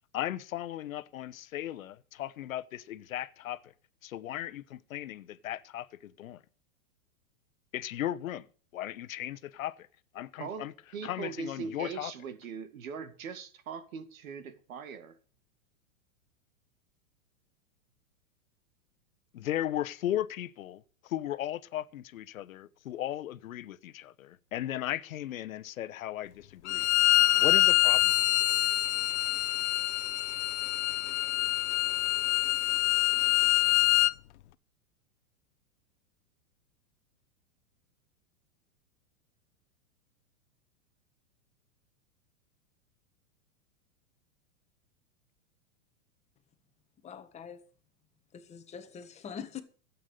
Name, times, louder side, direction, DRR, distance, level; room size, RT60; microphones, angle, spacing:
voice 1, 0.1-3.7 4.0-6.4 7.7-8.5 8.7-9.9 10.1-10.7 11.0-12.1 19.3-26.9 27.3-28.2, left 12 dB, 80° left, 1.0 m, -36 dB
voice 2, 10.4-15.2, right 6 dB, 80° right, 2.2 m, -41 dB
Bowed string instrument, 26.7-34.1, left 17 dB, 60° left, 0.8 m, -25 dB
voice 3, 47.0-47.6 48.3-49.6, left 7 dB, 15° left, 1.4 m, -43 dB
13.0 x 8.5 x 6.5 m
supercardioid pair, 150°, 40 cm